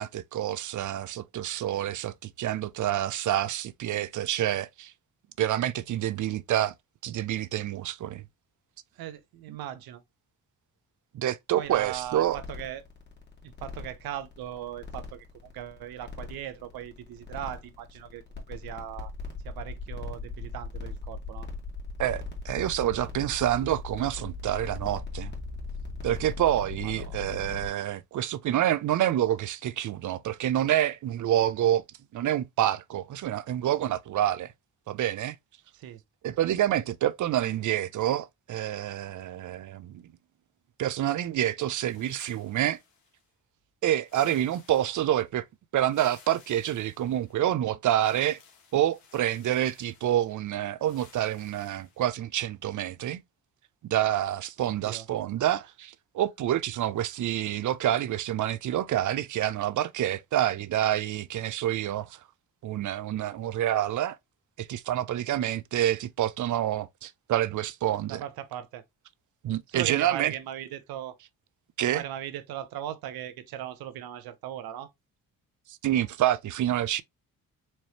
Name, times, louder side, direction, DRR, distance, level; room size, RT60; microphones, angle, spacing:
voice 1, 0.0-4.9 5.4-6.7 7.0-8.2 11.1-12.4 22.0-25.3 26.0-31.8 32.1-34.5 34.9-35.4 36.2-40.0 40.8-42.8 43.8-45.4 45.7-48.4 48.7-53.2 53.9-62.2 62.6-64.2 64.6-68.2 69.4-70.3 71.8-72.0 75.7-77.0, right 12 dB, 60° right, 0.5 m, -27 dB
voice 2, 8.9-10.0 11.6-12.8 13.4-18.2 18.5-19.1 19.4-21.5 26.8-27.1 35.7-36.0 54.8-55.0 68.1-68.8 69.7-71.1 71.9-74.9, right 11 dB, 90° right, 0.7 m, -38 dB
sound 1, 11.7-27.7, left 4 dB, 30° left, 1.9 m, -39 dB
sound 2, 41.8-43.3 44.0-45.3 45.8-47.5 48.0-50.4 50.8-52.1, left 6 dB, 85° left, 1.5 m, -57 dB
4.4 x 3.1 x 2.8 m
cardioid pair, 80°, 35 cm